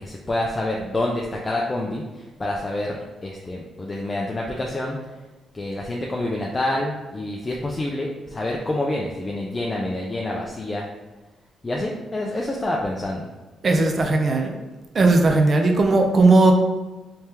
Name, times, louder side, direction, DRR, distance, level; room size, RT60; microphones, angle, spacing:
voice 1, 0.0-5.0 5.5-10.9 11.6-13.3, left 1 dB, 25° left, -2 dB, 0.5 m, -27 dB
voice 2, 13.6-14.5 14.9-16.5, right 2 dB, 45° right, 3 dB, 0.6 m, -17 dB
3.3 x 3.3 x 2.9 m, 1.2 s
cardioid pair, 85°, 0 cm